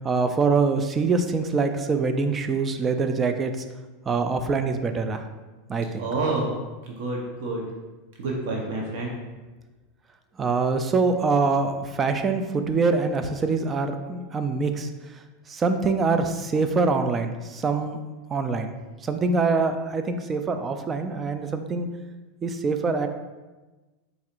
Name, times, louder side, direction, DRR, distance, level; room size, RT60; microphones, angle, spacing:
voice 1, 0.0-3.6 4.1-5.2 5.7-6.1 10.4-14.9 15.5-18.0 18.3-18.7 19.0-21.9 22.4-23.1, right 4 dB, 20° right, 7 dB, 0.3 m, -24 dB
voice 2, 6.0-6.5 6.8-7.6 8.2-9.1, right 2 dB, 65° right, -2 dB, 0.8 m, -28 dB
4.4 x 4.0 x 2.5 m, 1.2 s
supercardioid pair, 145°, 0 cm